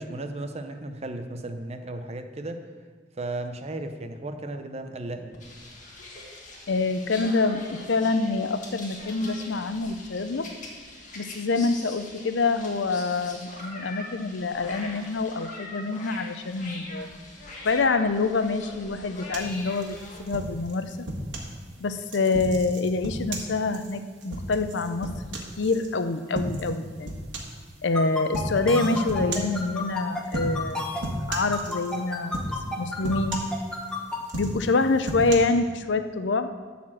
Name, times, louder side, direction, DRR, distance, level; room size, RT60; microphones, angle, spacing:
voice 1, 0.0-2.6 3.2-5.3, right 2 dB, 35° right, 7 dB, 0.8 m, -35 dB
sound 1, 5.3-20.2, left 2 dB, 45° left, 1.8 m, -42 dB
voice 2, 6.7-10.5 11.2-17.1 17.6-21.0 21.8-25.1 25.6-27.3 27.8-33.4 34.3-36.5, left 3 dB, 90° left, 10 dB, 0.6 m, -26 dB
sound 2, 19.3-21.5 22.1-25.9 26.3-26.7 27.0-27.6 28.3-28.6 29.1-29.6 30.2-30.7 31.0-32.0 32.3-32.7 33.0-33.9 34.2-35.3, right 1 dB, 85° right, 1.6 m, -34 dB
sound 3, 28.0-34.2, left 2 dB, 5° left, 1.2 m, -31 dB
12.0 x 4.3 x 7.5 m, 1.5 s
head